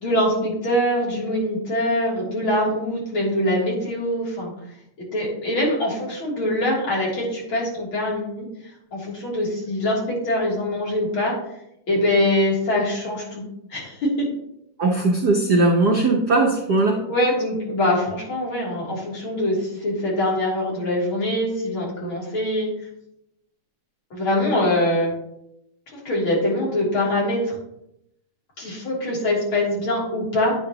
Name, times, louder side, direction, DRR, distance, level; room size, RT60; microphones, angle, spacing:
voice 1, 0.0-4.5 5.1-8.5 8.9-11.3 11.9-13.4 13.7-14.3 17.1-22.7 24.1-25.1 25.9-27.5 28.6-30.6, left 1 dB, 40° left, -5 dB, 3.9 m, -23 dB
voice 2, 14.8-17.0, right 2 dB, 70° right, 0 dB, 0.9 m, -19 dB
11.0 x 8.6 x 3.0 m, 0.79 s
omnidirectional pair, 3.5 m